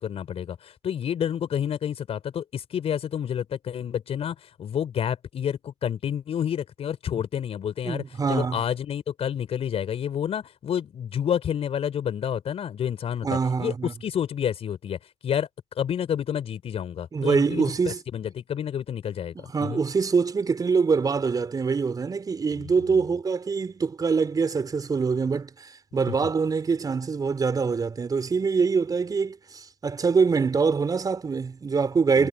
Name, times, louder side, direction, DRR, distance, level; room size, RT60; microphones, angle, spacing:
voice 1, 0.0-13.7 14.0-15.5 15.7-17.6 18.1-19.8 22.6-23.0 32.2-32.3, left 9 dB, 35° left, 5.0 m, -29 dB
voice 2, 7.8-8.6 13.2-13.9 17.1-18.0 19.3-32.3, right 5 dB, 20° right, 4.6 m, -24 dB
hypercardioid pair, 90°, 18 cm